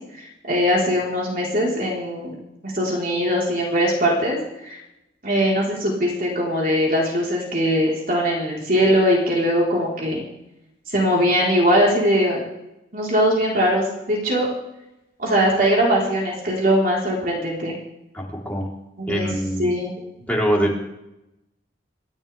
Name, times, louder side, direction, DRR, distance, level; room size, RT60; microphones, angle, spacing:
voice 1, 0.2-2.4 2.6-4.4 4.6-4.8 5.2-10.2 10.9-12.4 12.9-14.5 15.2-17.7 19.0-19.3 19.6-19.9, equal, 50° right, -3 dB, 4.3 m, -21 dB
voice 2, 18.1-18.7 19.1-19.7 20.3-20.8, equal, 10° left, -3 dB, 3.8 m, -23 dB
28.5 x 12.5 x 3.5 m, 0.89 s
head